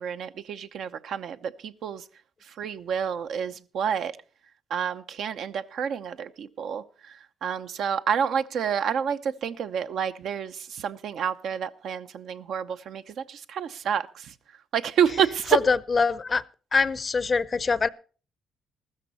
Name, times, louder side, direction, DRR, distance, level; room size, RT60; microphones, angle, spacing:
voice 1, 0.0-2.0 2.6-4.1 4.7-6.8 7.4-13.0 13.3-14.1 14.7-15.6, right 8 dB, 70° right, 0.8 m, -28 dB
voice 2, 15.5-16.4 16.7-17.9, left 4 dB, 35° left, 0.6 m, -23 dB
14.5 x 13.5 x 4.1 m
cardioid pair, 90°, 0 cm